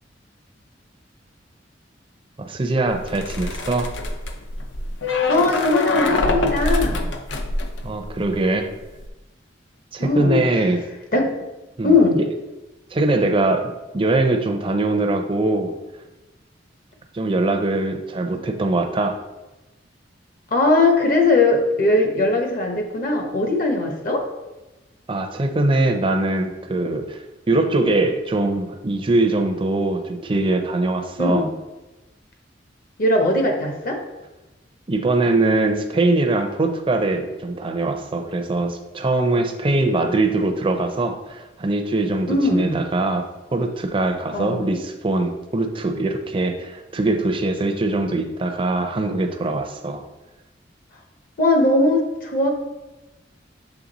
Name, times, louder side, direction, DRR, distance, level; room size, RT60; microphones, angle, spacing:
voice 1, 2.4-3.9 7.8-8.7 9.9-10.8 11.8-12.2 12.9-15.7 17.1-19.2 25.1-31.5 34.9-43.3 43.5-50.0, right 2 dB, 30° right, 5 dB, 0.5 m, -22 dB
sound 1, 2.9-8.4 8.7-9.1, left 2 dB, 75° left, 0.6 m, -25 dB
voice 2, 5.3-7.1 10.0-10.4 11.1-11.3 11.8-12.2 20.5-24.2 31.2-31.5 33.0-34.0 42.3-42.8 44.3-44.7 51.4-52.6, left 2 dB, 50° left, 3 dB, 0.9 m, -19 dB
7.2 x 3.3 x 4.0 m, 1.1 s
head